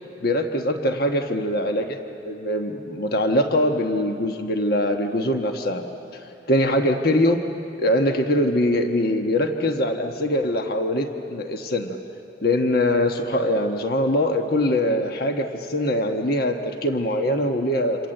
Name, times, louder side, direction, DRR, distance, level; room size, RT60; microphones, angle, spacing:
voice 1, 0.2-2.0 2.2-5.8 6.5-7.4 7.8-12.0 12.4-18.1, left 1 dB, 55° left, 4 dB, 1.3 m, -22 dB
28.0 x 27.0 x 7.9 m, 2.8 s
head